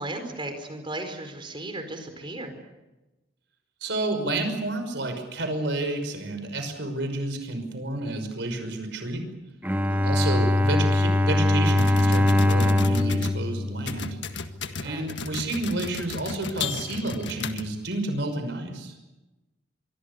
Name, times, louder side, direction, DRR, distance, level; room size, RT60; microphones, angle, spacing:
voice 1, 0.0-2.6 9.9-10.1 14.8-15.2, right 2 dB, 25° right, 7 dB, 4.6 m, -36 dB
voice 2, 3.8-9.3 10.0-14.2 14.8-18.9, right 2 dB, 60° right, 7 dB, 5.7 m, -30 dB
Bowed string instrument, 9.6-14.6, left 1 dB, 10° right, 1.9 m, -22 dB
picht-type-writer, 11.7-13.4 13.9-18.0, left 4 dB, 60° left, 1.7 m, -34 dB
26.0 x 23.5 x 6.9 m, 1.0 s
head